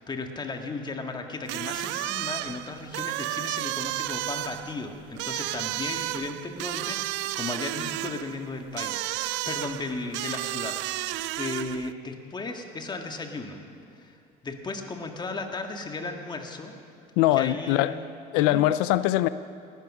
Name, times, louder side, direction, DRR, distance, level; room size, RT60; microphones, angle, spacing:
voice 1, 0.0-13.6 13.9-14.2 14.4-16.7 17.3-18.1 18.4-18.6, left 3 dB, 25° left, 4 dB, 1.8 m, -35 dB
sound 1, 1.5-11.9, right 18 dB, 75° right, 0.4 m, -32 dB
voice 2, 17.2-18.0 18.3-19.3, left 15 dB, 90° left, 14 dB, 0.4 m, -22 dB
19.0 x 12.0 x 6.2 m, 2.5 s
cardioid pair, 105°, 19 cm